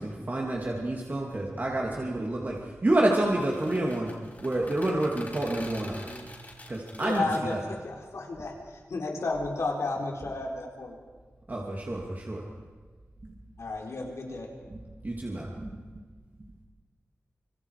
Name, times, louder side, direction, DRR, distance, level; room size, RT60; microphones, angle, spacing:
voice 1, 0.0-4.1 4.4-6.0 6.7-7.6 11.5-12.4 14.7-14.8 15.0-15.7, right 1 dB, 40° right, -2 dB, 2.9 m, -28 dB
sound 1, 3.3-7.4, left 2 dB, 35° left, 5.4 m, -46 dB
Piano, 5.8-8.0, right 1 dB, 20° left, 3.7 m, -50 dB
voice 2, 7.0-11.0 13.6-14.5, left 2 dB, 85° left, 0 dB, 4.1 m, -32 dB
26.0 x 25.5 x 5.1 m, 1.5 s
wide cardioid pair, 85°, 5 cm